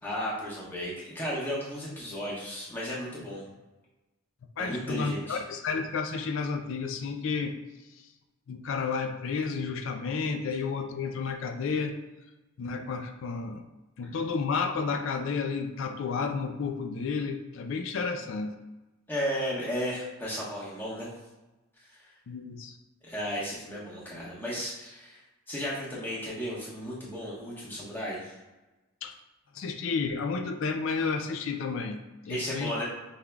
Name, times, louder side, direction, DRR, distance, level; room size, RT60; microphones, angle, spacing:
voice 1, 0.0-3.4 4.6-5.4 19.1-21.1 21.8-22.1 23.0-25.2 25.5-28.4 32.3-32.8, equal, 10° left, -7 dB, 1.1 m, -34 dB
voice 2, 4.6-7.6 8.5-11.9 12.6-13.6 14.0-18.6 22.3-22.7 29.0-29.2 29.5-32.7, left 5 dB, 60° left, 6 dB, 0.3 m, -31 dB
5.5 x 3.4 x 2.3 m, 1.1 s
head